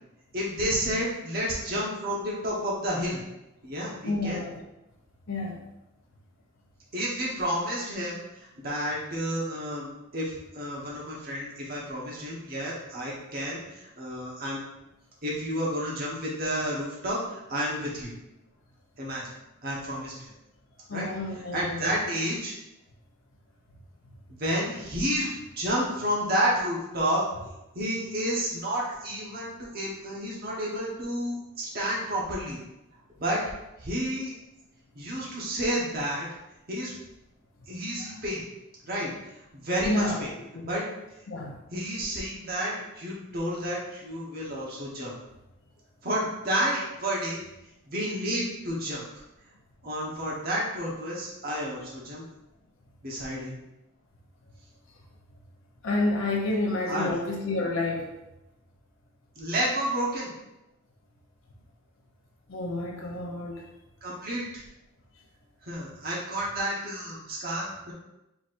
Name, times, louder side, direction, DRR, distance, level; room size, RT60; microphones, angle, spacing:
voice 1, 0.3-3.2 3.6-4.4 6.9-8.2 8.6-9.9 10.1-14.6 15.2-18.1 19.0-19.3 19.6-20.3 20.9-21.1 21.5-22.5 24.3-27.2 27.7-32.6 33.2-33.4 33.8-34.3 34.9-36.3 36.7-36.9 37.7-38.4 38.9-39.1 39.5-40.3 40.6-40.8 41.7-45.1 46.0-47.4 47.9-49.1 49.8-52.2 53.0-53.6 56.9-57.2 59.4-60.3 64.0-64.6 65.6-67.9, equal, 45° right, -5 dB, 1.1 m, -30 dB
voice 2, 4.1-4.6 5.3-5.7 20.9-21.9 38.0-38.2 39.8-40.2 40.5-40.7 41.3-41.6 55.8-58.1 62.5-63.7, left 2 dB, 70° left, 0 dB, 0.6 m, -29 dB
4.7 x 4.1 x 2.6 m, 0.93 s
head